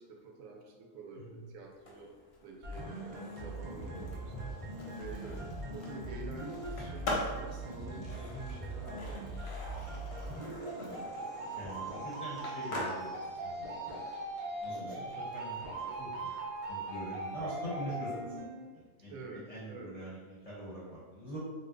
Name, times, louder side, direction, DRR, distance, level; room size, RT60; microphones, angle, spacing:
voice 1, 0.0-2.1 2.4-4.4 5.0-9.4 19.1-20.0, right 3 dB, 80° right, 1 dB, 1.0 m, -48 dB
Skateboard, 1.7-17.6, left 1 dB, 55° left, 0.8 m, -44 dB
sound 1, 2.6-18.6, right 2 dB, 40° right, 0.5 m, -40 dB
voice 2, 4.3-4.6 10.9-11.2 11.5-13.7 14.6-15.0 15.3-16.3 16.7-18.4 18.7-21.4, right 1 dB, 30° left, -9 dB, 0.8 m, -44 dB
2.7 x 2.2 x 3.7 m, 1.4 s
omnidirectional pair, 1.4 m